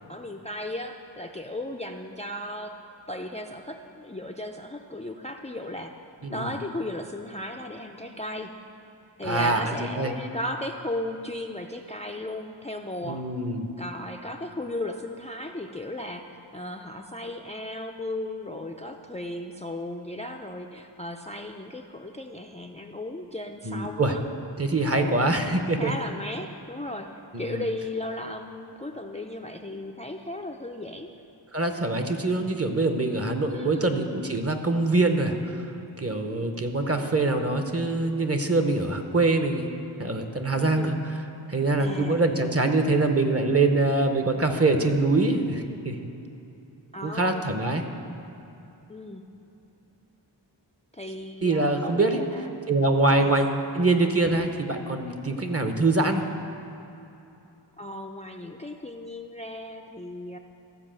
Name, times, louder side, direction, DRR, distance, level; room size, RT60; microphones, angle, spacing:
voice 1, 0.1-2.8 3.1-6.0 6.3-8.6 9.2-13.2 13.8-24.2 25.0-25.3 25.8-31.1 33.5-34.0 40.6-41.0 41.8-42.2 46.9-47.6 48.9-49.2 50.9-52.5 53.2-53.3 57.8-60.4, left 1 dB, 15° left, 3 dB, 0.4 m, -35 dB
voice 2, 6.2-6.5 9.2-10.1 13.0-13.7 23.6-24.1 24.6-25.9 27.3-27.6 31.5-35.6 36.0-39.7 40.0-40.9 41.5-46.0 47.0-47.9 51.4-52.2 52.7-53.5 53.7-56.2, right 2 dB, 35° right, 5 dB, 0.9 m, -24 dB
13.5 x 4.8 x 7.6 m, 2.9 s
wide cardioid pair, 55°, 43 cm